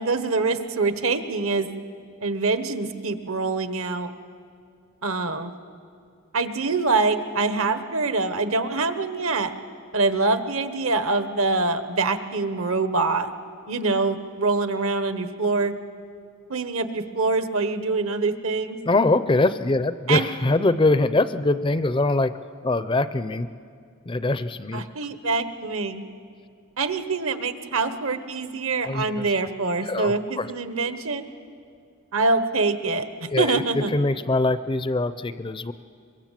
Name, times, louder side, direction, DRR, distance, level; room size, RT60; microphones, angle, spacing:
voice 1, 0.0-1.7 2.2-4.1 5.0-5.5 6.3-9.5 9.9-13.3 13.7-15.7 16.5-18.8 20.1-20.3 24.7-26.0 26.8-31.3 32.1-33.1 33.4-33.9, right 3 dB, 65° right, 10 dB, 1.3 m, -24 dB
voice 2, 18.9-22.3 22.6-23.5 24.1-24.9 28.8-29.4 29.8-30.5 33.3-35.7, left 2 dB, 20° left, 13 dB, 0.5 m, -23 dB
24.0 x 22.5 x 7.5 m, 2.2 s
head